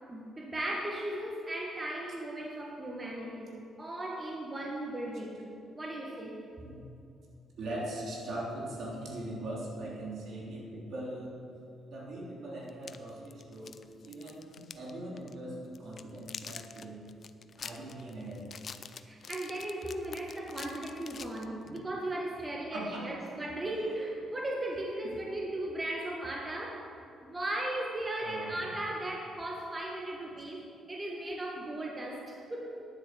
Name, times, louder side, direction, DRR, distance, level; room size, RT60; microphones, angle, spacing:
voice 1, 0.1-5.5 5.7-6.4 19.0-26.9 27.2-32.9, right 1 dB, 25° right, -1 dB, 1.5 m, -37 dB
voice 2, 7.6-11.4 11.9-13.8 14.0-17.0 17.6-18.5 22.7-23.2 23.7-24.0 28.2-28.7, right 1 dB, 65° right, -4 dB, 3.4 m, -40 dB
sound 1, 12.7-14.9 15.2-15.3 15.7-21.8, left 6 dB, 50° left, 0.5 m, -46 dB
10.0 x 9.3 x 6.9 m, 2.6 s
cardioid pair, 90°, 0 cm